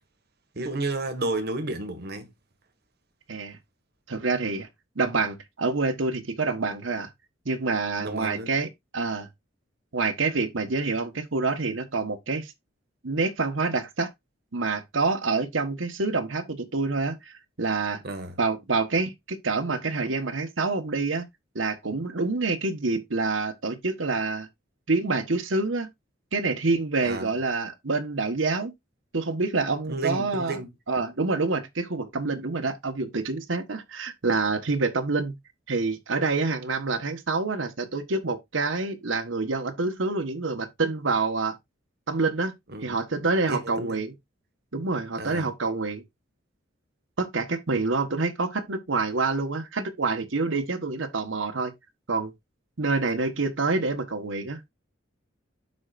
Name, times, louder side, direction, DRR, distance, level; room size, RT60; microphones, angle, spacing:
voice 1, 0.6-2.3 8.0-8.5 18.0-18.4 27.0-27.3 29.9-30.7 42.7-43.0 43.5-44.0 45.2-45.5, right 2 dB, 55° right, 1.6 m, -31 dB
voice 2, 4.1-4.7 4.9-7.1 7.4-9.3 9.9-12.5 13.0-14.1 14.5-18.0 18.4-21.3 21.5-24.5 24.9-25.9 26.3-28.7 29.1-30.6 30.9-35.3 35.7-41.6 42.1-44.1 44.7-46.0 47.2-51.7 52.1-52.3 52.8-54.6, right 3 dB, 90° right, 1.2 m, -27 dB
12.0 x 4.5 x 2.4 m
head